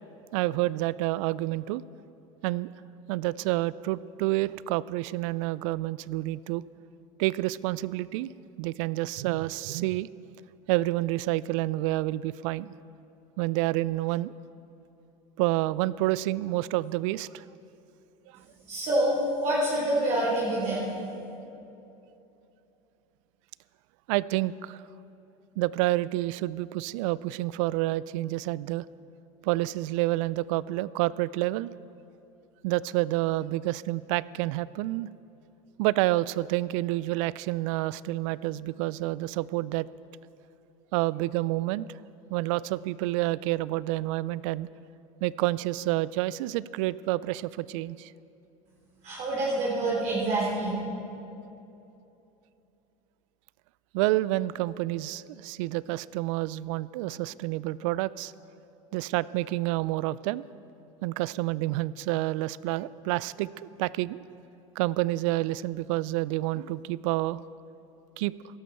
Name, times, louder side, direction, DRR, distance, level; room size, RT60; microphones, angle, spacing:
voice 1, 0.3-1.8 2.4-2.7 3.1-6.6 7.2-8.3 8.6-10.1 10.7-12.7 13.4-14.3 15.4-17.4 24.1-24.8 25.6-28.8 29.4-31.7 32.6-35.1 35.8-39.9 40.9-41.9 42.3-44.7 45.2-48.1 53.9-58.3 58.9-60.4 61.0-64.2 64.8-67.4 68.2-68.3, right 18 dB, 70° right, 20 dB, 0.4 m, -28 dB
voice 2, 18.7-20.9 49.0-50.7, right 1 dB, 45° right, -6 dB, 3.4 m, -26 dB
16.5 x 12.5 x 4.4 m, 2.8 s
hypercardioid pair, 90°, 17 cm